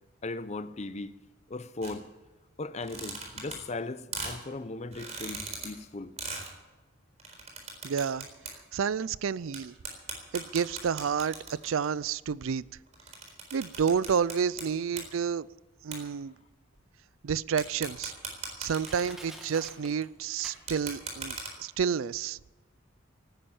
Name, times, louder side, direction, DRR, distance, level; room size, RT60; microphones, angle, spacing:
voice 1, 0.2-2.1 2.6-6.1, left 2 dB, 35° left, 0.6 m, -38 dB
sound 1, 1.8-1.9 2.7-3.8 4.1-4.4 4.9-5.7 6.2-6.5 7.2-8.5 8.8-8.9 9.5-9.6 9.8-11.9 12.6-14.6 14.9-15.1 15.9-16.0 17.6-19.3 20.6-21.5, right 4 dB, 35° right, 4.1 m, -38 dB
voice 2, 7.8-8.3 8.7-9.7 10.3-12.6 13.5-15.5 15.8-16.3 17.2-18.1 18.6-22.4, right 6 dB, 90° right, 0.4 m, -30 dB
Crushing, 16.8-16.9 17.5-17.6 18.3-18.4 18.8-21.0 21.4-21.5, equal, ahead, 2.2 m, -47 dB
18.5 x 10.0 x 7.2 m
head